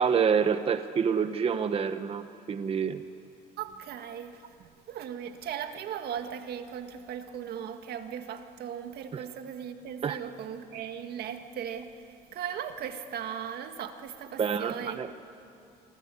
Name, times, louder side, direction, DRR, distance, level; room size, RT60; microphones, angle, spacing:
voice 1, 0.0-3.0 9.1-9.2 10.0-10.2 14.4-15.1, right 6 dB, 35° right, 0.9 m, -27 dB
voice 2, 3.6-15.1, right 8 dB, 70° right, 1.9 m, -38 dB
27.5 x 24.0 x 8.5 m
cardioid pair, 110°, 17 cm